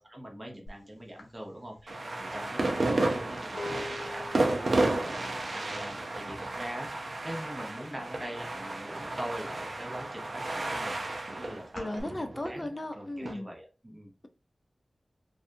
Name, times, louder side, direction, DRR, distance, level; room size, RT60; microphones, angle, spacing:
voice 1, 0.0-3.8 4.0-4.4 4.9-11.0 11.3-12.7 12.9-14.1, equal, 25° right, 0 dB, 0.9 m, -43 dB
sound 1, 0.7-0.8 1.2-6.9 7.1-7.6 7.9-9.1 9.4-12.0, left 2 dB, 75° left, 0.8 m, -45 dB
sound 2, 1.9-13.3, right 2 dB, 60° right, 0.5 m, -32 dB
voice 2, 11.8-13.5, left 1 dB, 30° left, 7 dB, 0.4 m, -36 dB
2.6 x 2.3 x 2.5 m, 0.31 s
wide cardioid pair, 75°, 0 cm